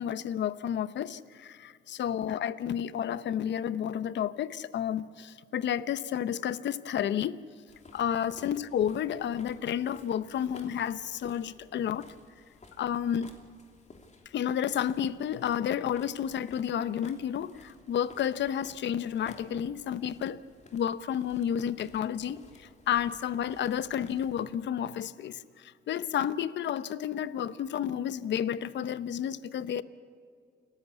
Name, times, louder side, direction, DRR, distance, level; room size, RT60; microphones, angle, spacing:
voice 1, 0.0-7.4 7.9-12.1 12.8-13.3 14.3-20.4 20.7-22.4 22.9-29.8, left 9 dB, 65° left, 0.9 m, -31 dB
sound 1, 7.7-24.5, left 3 dB, 35° left, 2.8 m, -55 dB
28.5 x 14.0 x 8.3 m
cardioid pair, 90°, 20 cm